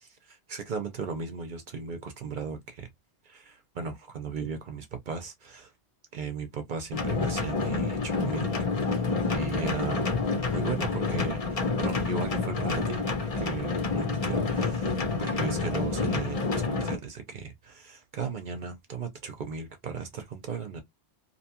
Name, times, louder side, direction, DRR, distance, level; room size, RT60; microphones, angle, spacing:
voice 1, 0.0-2.9 3.2-5.7 6.1-8.5 8.8-10.2 10.5-13.1 13.3-20.8, right 5 dB, 55° right, 0.7 m, -37 dB
sound 1, 6.9-17.0, left 4 dB, 40° left, 0.6 m, -28 dB
2.8 x 2.2 x 2.8 m
omnidirectional pair, 1.1 m